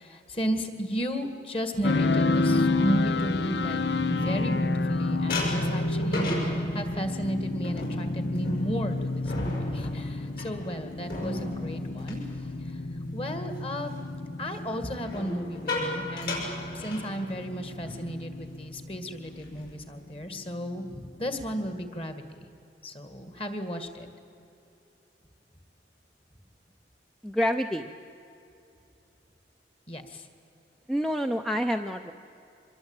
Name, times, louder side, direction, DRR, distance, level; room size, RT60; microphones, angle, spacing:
voice 1, 0.0-3.8 4.1-12.8 13.1-13.9 14.4-16.4 16.7-22.5 22.8-24.1 29.9-30.3, equal, 30° left, 8 dB, 2.1 m, -34 dB
sound 1, 1.8-21.8, left 2 dB, 75° left, 0.9 m, -30 dB
sound 2, 3.6-4.8 5.3-13.1 13.5-13.8 15.0-17.6 17.9-18.1 18.4-18.7 19.1-19.8, left 1 dB, 55° left, 6.5 m, -36 dB
voice 2, 27.2-27.9 30.9-32.1, equal, ahead, 6 dB, 0.6 m, -27 dB
25.0 x 21.5 x 9.0 m, 2.7 s
head